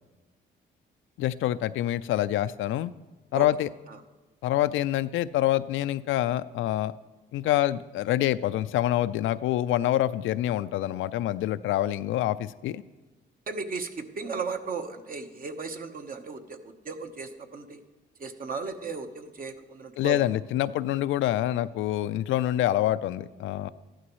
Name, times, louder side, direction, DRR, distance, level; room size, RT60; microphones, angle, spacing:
voice 1, 1.2-2.9 3.3-3.7 4.4-6.9 7.3-12.8 20.0-23.7, left 13 dB, 80° left, 15 dB, 0.4 m, -26 dB
voice 2, 13.5-17.8 18.2-20.2, right 4 dB, 45° right, 6 dB, 1.1 m, -36 dB
14.0 x 11.5 x 3.1 m, 1.2 s
cardioid pair, 90°, 20 cm